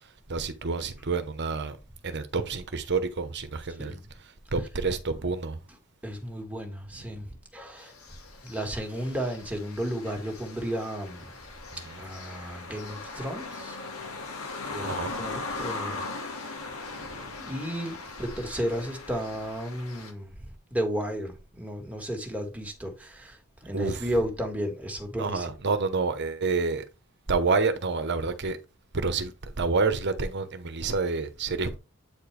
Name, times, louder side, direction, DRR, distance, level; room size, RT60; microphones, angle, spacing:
voice 1, 0.3-1.8 2.0-4.0 4.5-5.6 7.1-7.2 11.7-12.0 14.8-15.2 17.0-17.3 23.7-24.1 25.2-26.8 27.3-28.6 28.9-31.8, right 4 dB, 55° right, 1.0 m, -28 dB
voice 2, 6.0-7.9 8.4-11.3 12.0-13.8 14.7-16.6 17.4-20.3 20.7-25.5, equal, 5° right, 1.7 m, -33 dB
sound 1, 7.8-20.1, left 3 dB, 75° left, 1.7 m, -39 dB
8.6 x 4.4 x 3.3 m
head